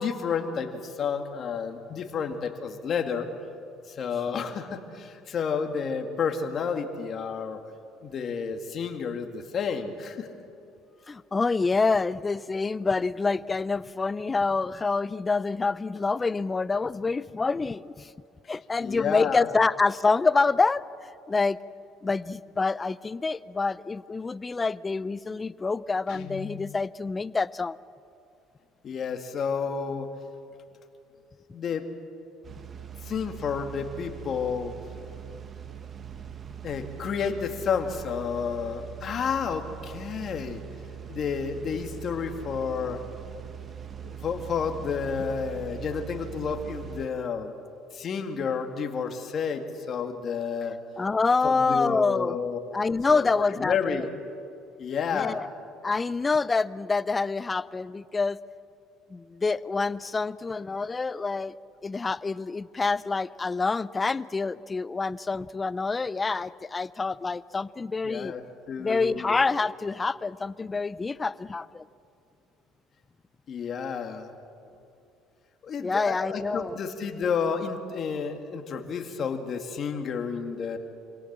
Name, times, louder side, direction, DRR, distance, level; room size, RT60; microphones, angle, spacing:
voice 1, 0.0-3.3 3.9-7.6 8.0-10.3 18.8-19.6 28.8-30.1 31.5-31.9 33.0-34.7 36.6-40.6 41.1-43.0 44.0-47.5 47.9-50.8 51.4-52.6 53.1-54.1 54.8-55.4 68.0-68.4 68.7-69.4 73.5-74.3 75.6-80.8, left 6 dB, 45° left, 5 dB, 2.1 m, -30 dB
voice 2, 11.1-18.1 18.5-20.8 21.3-21.6 22.0-27.8 51.0-52.4 52.7-54.0 55.1-55.5 55.8-58.4 59.1-61.5 61.8-68.3 68.8-71.8 75.8-76.8, left 4 dB, 20° left, 18 dB, 0.5 m, -27 dB
Guitar, 26.1-26.9, left 15 dB, 70° left, 1.5 m, -41 dB
sound 1, 32.4-47.1, right 9 dB, 40° right, 1.3 m, -41 dB
26.0 x 17.5 x 7.5 m, 2.6 s
supercardioid pair, 95°, 0 cm